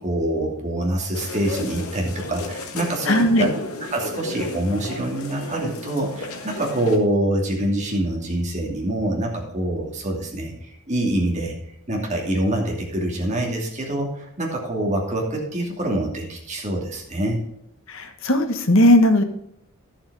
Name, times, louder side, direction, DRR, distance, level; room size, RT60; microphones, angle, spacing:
voice 1, 0.0-3.5 3.9-11.5 11.9-17.4, right 1 dB, 30° right, 0 dB, 2.6 m, -25 dB
sound 1, 1.1-7.0, left 2 dB, 80° left, 1.6 m, -34 dB
voice 2, 3.1-3.5 17.9-19.2, left 1 dB, 60° left, 6 dB, 1.3 m, -17 dB
11.5 x 7.3 x 4.8 m, 0.78 s
head